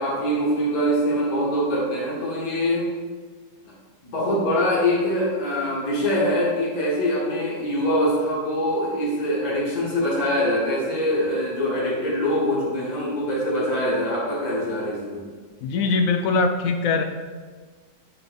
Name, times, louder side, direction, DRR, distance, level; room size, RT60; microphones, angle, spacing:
voice 1, 0.0-2.9 4.0-15.2, equal, 55° left, -6 dB, 2.5 m, -23 dB
voice 2, 15.6-17.0, left 4 dB, 75° left, 7 dB, 0.8 m, -21 dB
8.5 x 4.0 x 5.3 m, 1.5 s
omnidirectional pair, 1.9 m